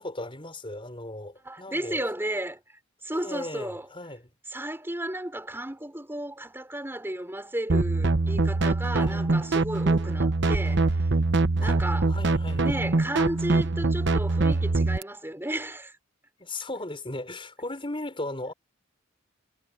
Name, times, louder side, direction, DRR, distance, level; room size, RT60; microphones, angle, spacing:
voice 1, 0.0-2.1 3.1-4.3 9.0-9.4 11.6-11.8 12.1-12.9 16.4-18.5, left 2 dB, 25° left, 5.2 m, -37 dB
voice 2, 1.4-3.9 4.5-11.1 11.6-12.1 12.6-15.9, right 1 dB, 10° right, 5.4 m, -34 dB
sound 1, 7.7-15.0, right 3 dB, 60° right, 1.0 m, -24 dB
head